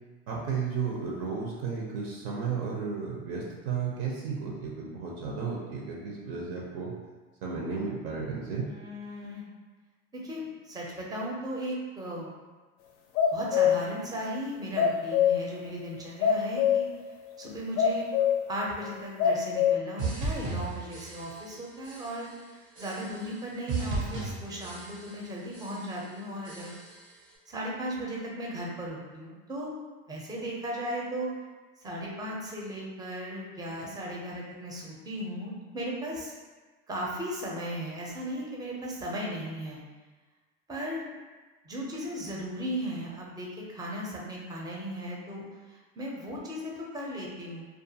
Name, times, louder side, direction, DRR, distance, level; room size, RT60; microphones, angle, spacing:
voice 1, 0.3-6.9 7.4-8.7, right 5 dB, 60° right, -2 dB, 0.6 m, -33 dB
voice 2, 8.6-9.4 10.1-12.3 13.3-16.9 17.4-18.1 18.5-26.8 27.5-29.7 30.1-31.3 31.8-36.3 36.9-39.8 40.7-41.1 41.6-45.4 45.7-47.7, equal, 10° right, -3 dB, 0.5 m, -36 dB
sound 1, 13.2-13.8 14.8-15.4 16.2-16.9 17.4-17.5 17.8-18.4 18.9-19.7, left 8 dB, 60° left, 0.4 m, -24 dB
sound 2, 20.0-21.6 21.8-22.3 22.8-23.4 23.7-25.3 25.5-26.0 26.4-27.1, right 3 dB, 90° right, 1.1 m, -36 dB
2.4 x 2.4 x 2.7 m, 1.3 s
supercardioid pair, 115°, 33 cm